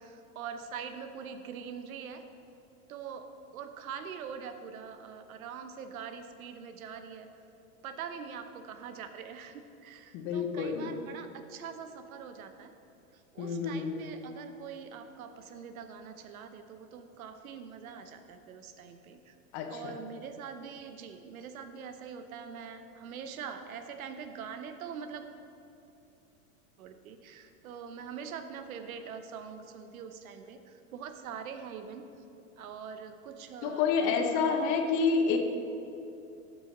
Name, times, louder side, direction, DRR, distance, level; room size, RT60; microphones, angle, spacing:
voice 1, 0.0-2.2 2.9-3.3 3.5-7.3 7.8-12.7 13.1-19.4 19.7-25.3 26.8-32.0 32.6-34.9, right 7 dB, 85° right, 8 dB, 0.9 m, -43 dB
voice 2, 10.1-10.9 13.4-13.9 19.5-19.9 33.6-35.4, left 5 dB, 50° left, 5 dB, 1.2 m, -28 dB
12.5 x 6.3 x 3.8 m, 2.8 s
hypercardioid pair, 115°, 41 cm